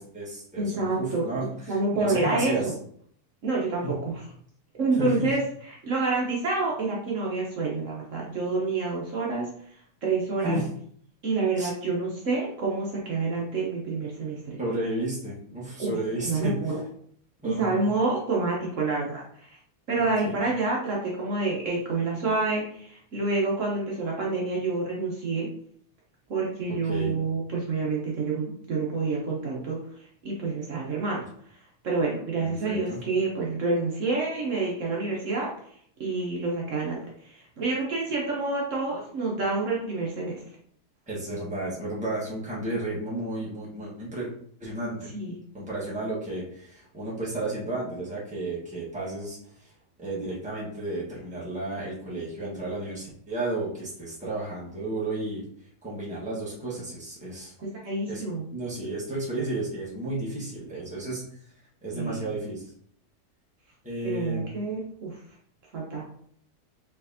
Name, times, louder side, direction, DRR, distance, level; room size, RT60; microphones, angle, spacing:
voice 1, 0.0-2.7 3.8-3.9 4.9-5.3 10.4-10.7 11.6-11.7 14.6-16.7 17.4-17.9 19.9-20.4 26.9-27.2 32.4-33.0 41.1-44.3 44.6-45.1 45.5-49.7 50.0-55.4 55.8-57.5 58.1-58.2 58.5-61.2 61.8-62.6 63.8-64.5, right 2 dB, 5° right, -7 dB, 1.1 m, -32 dB
voice 2, 0.6-1.2 1.7-2.7 3.4-4.1 4.8-5.4 5.8-9.5 10.0-10.6 11.2-14.6 15.8-16.7 17.4-19.6 19.9-25.5 26.3-29.8 30.2-31.2 31.8-35.5 36.0-40.4 45.1-45.3 57.6-58.5 61.9-62.3 64.0-65.2 65.7-66.0, right 3 dB, 60° right, -3 dB, 1.1 m, -28 dB
4.4 x 3.5 x 2.7 m, 0.63 s
omnidirectional pair, 1.6 m